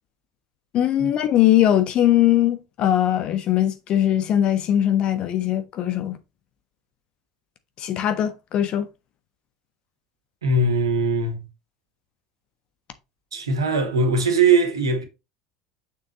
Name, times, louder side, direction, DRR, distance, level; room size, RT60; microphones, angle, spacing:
voice 1, 0.7-6.2 7.8-8.9, left 11 dB, 40° left, 1.2 m, -20 dB
voice 2, 10.4-11.5 13.3-15.0, right 3 dB, 75° right, 1.7 m, -20 dB
6.8 x 6.4 x 3.0 m
figure-of-eight pair, 70°, 2 cm